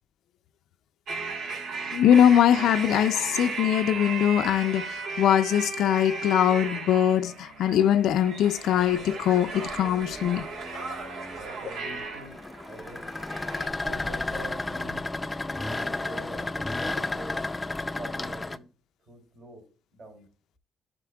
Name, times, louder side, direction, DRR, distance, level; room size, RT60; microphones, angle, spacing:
sound 1, 1.1-13.7, right 4 dB, 75° right, 1.4 m, -36 dB
voice 1, 1.9-10.4, left 10 dB, 80° left, 0.4 m, -22 dB
sound 2, 8.8-18.6, left 2 dB, 15° left, 0.4 m, -33 dB
voice 2, 11.3-13.1 13.8-15.1 15.7-17.4 18.0-18.7 19.1-19.7 19.9-20.3, right 1 dB, 50° right, 3.7 m, -44 dB
9.9 x 5.7 x 2.3 m
cardioid pair, 90°, 0 cm